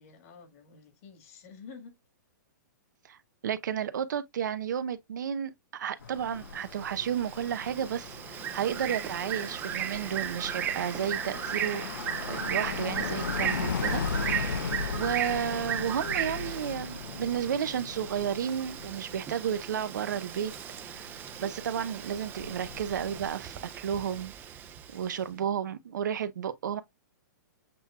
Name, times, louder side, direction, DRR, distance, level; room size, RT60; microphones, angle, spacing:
voice 1, 0.0-2.0 24.6-25.8, left 5 dB, 50° left, 1.7 m, -52 dB
voice 2, 3.4-11.9 12.3-20.5 20.9-24.3 24.9-26.8, right 8 dB, 75° right, 0.6 m, -32 dB
sound 1, 6.0-23.3, left 6 dB, 85° left, 0.6 m, -38 dB
Bird, 6.4-25.1, right 10 dB, 20° right, 0.5 m, -37 dB
7.7 x 2.9 x 2.3 m
hypercardioid pair, 140°, 10 cm